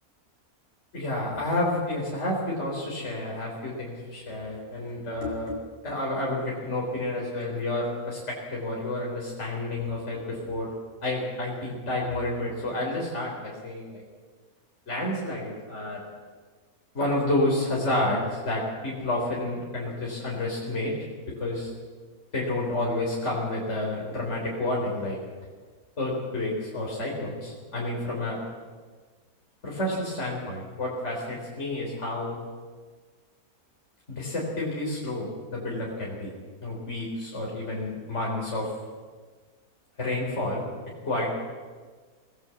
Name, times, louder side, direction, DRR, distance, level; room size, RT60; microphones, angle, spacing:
voice 1, 0.9-5.6 5.8-10.7 11.0-14.0 14.9-16.0 16.9-20.9 21.4-21.7 22.3-25.2 26.0-28.4 29.6-32.4 34.1-36.3 36.6-38.7 40.0-40.7 41.0-41.3, left 1 dB, 50° left, -3 dB, 4.4 m, -30 dB
24.5 x 18.0 x 7.8 m, 1.5 s
omnidirectional pair, 1.5 m